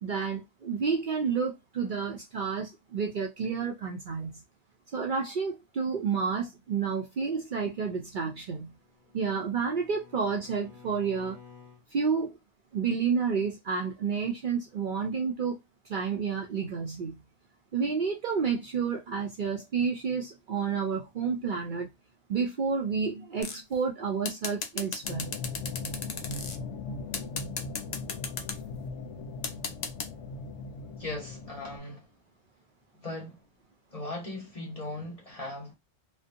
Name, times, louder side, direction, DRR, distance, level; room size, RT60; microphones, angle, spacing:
voice 1, 0.0-4.4 4.9-8.8 9.1-11.4 11.9-12.4 12.7-15.6 15.9-17.2 17.7-21.9 22.3-25.4, right 5 dB, 55° right, 0.6 m, -30 dB
Bowed string instrument, 8.5-11.9, left 6 dB, ahead, 0.9 m, -53 dB
sound 1, 23.4-23.7 24.3-26.6 27.1-28.6 29.4-30.1, left 5 dB, 55° left, 0.4 m, -35 dB
sound 2, 25.0-31.8, left 3 dB, 80° left, 0.9 m, -39 dB
voice 2, 31.0-32.1 32.9-33.4 33.9-35.7, left 2 dB, 35° left, 1.0 m, -38 dB
2.6 x 2.2 x 2.5 m
omnidirectional pair, 1.2 m